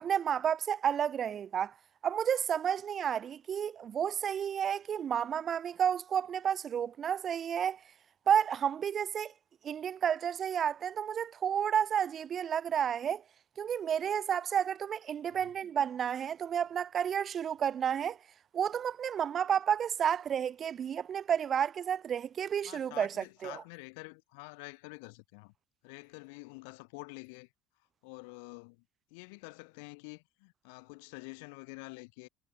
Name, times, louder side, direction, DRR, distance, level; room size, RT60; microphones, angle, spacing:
voice 1, 0.0-1.7 2.0-7.8 8.3-9.3 9.6-13.2 13.6-18.2 18.5-23.6, right 8 dB, 40° right, 0.9 m, -31 dB
voice 2, 22.6-25.5 25.8-27.5 28.0-28.8 29.1-32.3, left 32 dB, 90° left, 6.8 m, -48 dB
cardioid pair, 115°, 0 cm